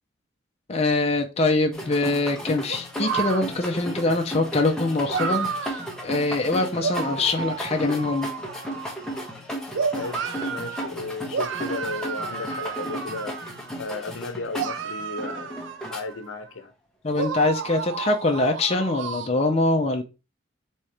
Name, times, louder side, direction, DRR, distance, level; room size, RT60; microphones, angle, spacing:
voice 1, 0.7-8.3 17.0-20.0, left 2 dB, 30° left, 0.5 m, -24 dB
sound 1, 1.7-16.0, equal, 5° left, 0.8 m, -35 dB
sound 2, 2.7-3.4 5.1-6.0 6.8-9.3 9.7-10.9 11.3-13.7 14.6-16.5 17.1-19.3, right 6 dB, 75° right, 0.5 m, -31 dB
voice 2, 9.9-13.4 13.8-15.5 15.9-16.7, left 3 dB, 90° left, 0.6 m, -34 dB
4.2 x 3.6 x 3.3 m
head